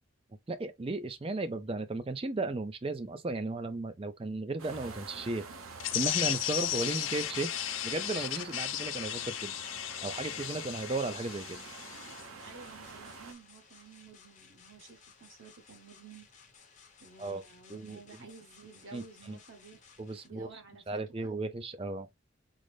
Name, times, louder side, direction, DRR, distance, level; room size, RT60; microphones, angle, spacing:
voice 1, 0.5-5.4 5.9-7.5 7.8-9.5 10.0-11.6 17.2-17.4 17.7-18.0 18.9-19.4 20.0-20.6 20.9-22.1, right 2 dB, 25° right, 0.4 m, -35 dB
sound 1, 4.6-13.3, right 3 dB, 85° right, 0.8 m, -47 dB
sound 2, 5.8-12.2, left 13 dB, 65° left, 0.3 m, -35 dB
sound 3, 11.0-20.3, left 5 dB, 35° left, 0.8 m, -58 dB
voice 2, 12.4-16.3 17.0-19.8 20.2-21.3, right 4 dB, 65° right, 1.2 m, -52 dB
3.9 x 2.0 x 3.2 m
head